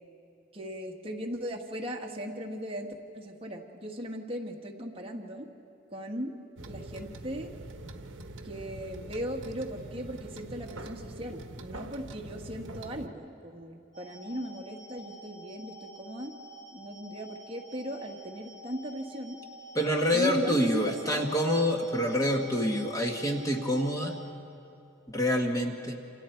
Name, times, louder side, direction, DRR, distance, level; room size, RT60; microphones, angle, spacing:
voice 1, 0.5-5.5 5.9-6.3 6.7-7.5 8.4-16.3 16.7-19.4 20.1-21.2, equal, 25° right, 1 dB, 1.6 m, -38 dB
sound 1, 6.6-13.1, right 2 dB, 60° right, 1.2 m, -44 dB
sound 2, 13.9-24.2, equal, 75° left, 7.0 m, -49 dB
voice 2, 19.7-24.2 25.1-26.0, equal, 15° left, 2 dB, 1.5 m, -27 dB
28.0 x 27.5 x 4.6 m, 2.6 s
head